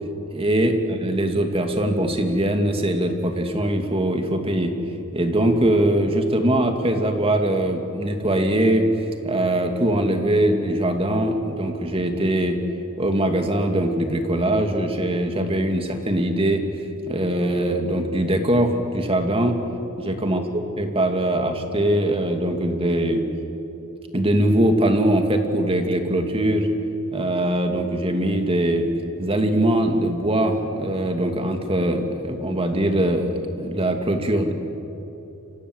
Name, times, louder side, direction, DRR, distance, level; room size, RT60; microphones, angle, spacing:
voice 1, 0.3-4.7 5.1-8.8 9.2-12.6 13.0-16.6 17.1-19.6 20.0-23.2 24.1-26.7 27.1-28.9 29.2-34.5, right 1 dB, 25° right, 5 dB, 2.5 m, -22 dB
29.0 x 25.0 x 8.1 m, 2.9 s
head